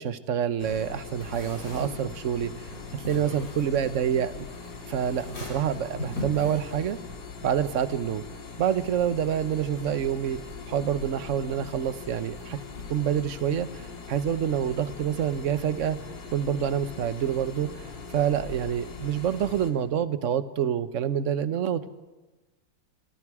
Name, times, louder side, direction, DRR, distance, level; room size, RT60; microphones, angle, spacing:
voice 1, 0.0-4.5 4.9-7.0 7.4-8.2 8.6-10.4 10.7-12.6 12.9-16.0 16.3-17.9 18.1-21.9, right 9 dB, 50° right, 12 dB, 1.0 m, -27 dB
sound 1, 0.6-19.7, left 5 dB, 60° left, 2.8 m, -41 dB
sound 2, 1.2-7.3, left 2 dB, 40° left, 7.8 m, -40 dB
29.5 x 26.0 x 4.9 m, 1.2 s
omnidirectional pair, 2.3 m